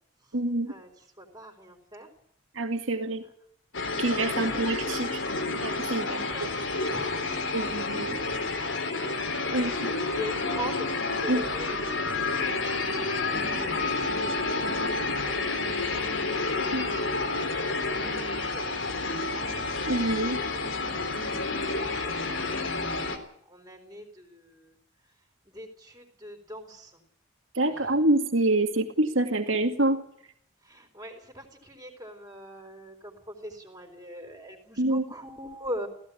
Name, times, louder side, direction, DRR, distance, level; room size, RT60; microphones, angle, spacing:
voice 1, 0.3-0.7 2.6-3.2 4.0-5.1 5.6-6.5 7.5-8.2 9.5-9.9 11.3-11.4 16.7-16.9 19.9-20.4 27.6-30.0 34.8-35.0, right 2 dB, 90° right, 5 dB, 2.3 m, -26 dB
voice 2, 1.2-2.1 2.9-3.2 4.3-4.6 6.1-7.5 9.4-12.1 12.9-17.0 17.6-19.6 20.0-20.1 21.5-24.7 25.5-27.0 27.7-28.0 30.6-35.9, equal, 20° right, 3 dB, 3.9 m, -42 dB
sound 1, 3.7-23.2, left 3 dB, 85° left, 3.7 m, -30 dB
16.5 x 16.5 x 10.0 m, 0.70 s
head